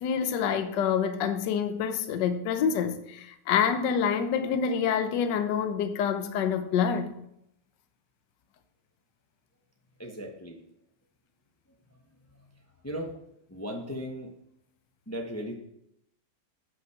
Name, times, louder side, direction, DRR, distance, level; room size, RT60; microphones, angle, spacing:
voice 1, 0.0-7.2, left 7 dB, 60° left, 9 dB, 1.3 m, -27 dB
voice 2, 10.0-10.6 12.8-13.1 13.5-14.3 15.1-15.5, equal, 25° left, 1 dB, 0.3 m, -36 dB
8.9 x 5.6 x 5.9 m, 0.76 s
omnidirectional pair, 2.4 m